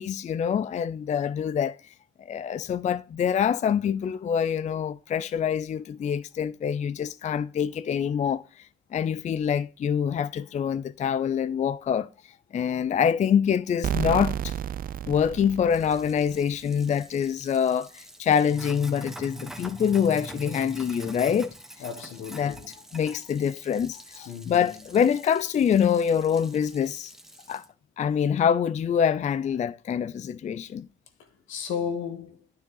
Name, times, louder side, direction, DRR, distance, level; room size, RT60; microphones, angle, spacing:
voice 1, 0.0-1.8 2.3-8.7 8.9-12.1 12.5-14.5 15.1-21.5 22.3-27.1 27.5-27.6 28.0-30.9, left 8 dB, 35° left, 0.4 m, -25 dB
sound 1, 13.8-16.5, right 10 dB, 45° right, 0.4 m, -31 dB
Sink (filling or washing), 15.7-27.6, right 1 dB, ahead, 1.3 m, -44 dB
voice 2, 21.8-22.7 24.3-24.7 31.5-32.4, left 7 dB, 80° left, 1.5 m, -34 dB
9.6 x 6.7 x 3.9 m
cardioid pair, 90°, 20 cm